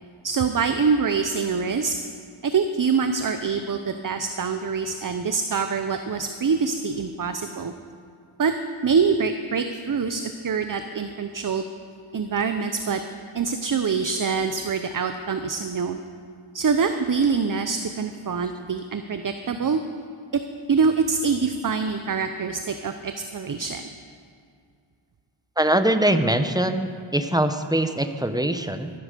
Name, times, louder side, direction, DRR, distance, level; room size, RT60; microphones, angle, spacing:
voice 1, 0.2-1.9 2.4-7.7 8.4-8.5 8.8-11.6 12.1-13.0 13.3-16.0 16.5-19.8 20.7-23.8, right 5 dB, 40° right, 8 dB, 0.7 m, -25 dB
voice 2, 25.6-28.9, right 1 dB, 10° right, 8 dB, 0.8 m, -22 dB
13.5 x 10.0 x 6.7 m, 2.3 s
wide cardioid pair, 85°, 49 cm